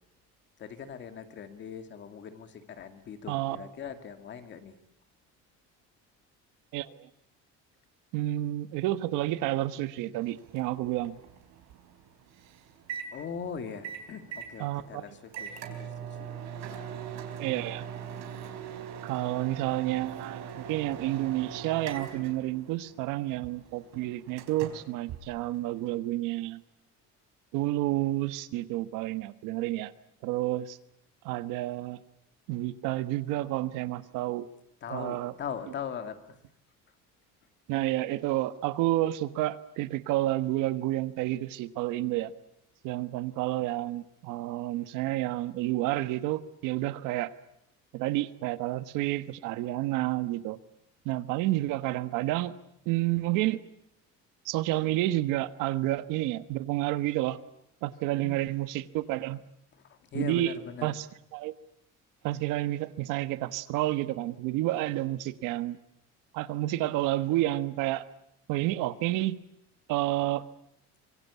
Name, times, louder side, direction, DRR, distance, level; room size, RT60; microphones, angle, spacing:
voice 1, 0.6-4.7 13.1-16.3 16.7-16.8 34.8-36.4 58.1-58.5 59.7-61.0, left 7 dB, 35° left, 8 dB, 2.3 m, -40 dB
voice 2, 3.3-3.7 6.7-7.1 8.1-11.2 14.6-15.1 17.4-17.8 19.0-26.6 27.5-29.9 30.2-30.8 31.2-32.0 32.5-34.5 34.9-35.3 37.7-42.3 42.8-47.3 47.9-50.6 51.0-52.5 52.8-53.6 54.4-57.4 57.8-59.4 60.1-60.5 60.8-61.1 61.3-61.5 62.2-65.8 66.3-68.0 68.5-69.4 69.9-70.5, right 16 dB, 80° right, 12 dB, 1.4 m, -30 dB
Microwave oven, 10.2-25.9, right 8 dB, 60° right, 4.2 m, -42 dB
25.0 x 23.5 x 8.3 m, 0.78 s
cardioid pair, 175°, 31 cm